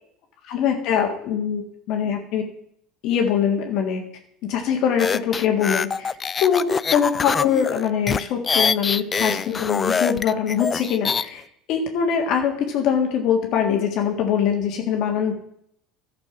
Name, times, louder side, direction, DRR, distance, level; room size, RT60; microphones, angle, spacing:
voice 1, 0.5-1.6 1.9-2.4 3.0-4.0 4.4-6.1 6.4-6.7 6.9-11.4 11.7-15.3, left 8 dB, 60° left, 2 dB, 1.7 m, -22 dB
sound 1, 5.0-11.2, left 5 dB, 25° left, 0.3 m, -24 dB
11.5 x 6.1 x 5.9 m, 0.70 s
supercardioid pair, 120°, 0 cm